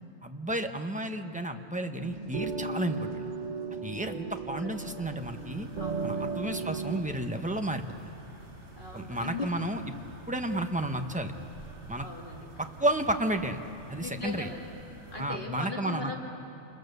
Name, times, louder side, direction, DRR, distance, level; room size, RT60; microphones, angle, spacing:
voice 1, 0.2-3.3 3.8-5.7 6.0-8.1 8.9-9.8 10.3-11.3 11.9-12.1 12.6-13.6 13.9-14.5 15.2-16.1, right 1 dB, 5° right, 5 dB, 0.8 m, -32 dB
sound 1, 2.0-7.0, right 4 dB, 35° right, 1.0 m, -36 dB
voice 2, 3.8-4.2 4.6-5.0 5.8-6.3 8.8-9.5 12.0-12.7 14.0-14.8 15.1-16.2, left 3 dB, 35° left, -1 dB, 2.3 m, -40 dB
sound 2, 5.2-15.3, right 2 dB, 55° right, 2.6 m, -49 dB
28.0 x 22.0 x 6.8 m, 2.8 s
omnidirectional pair, 1.4 m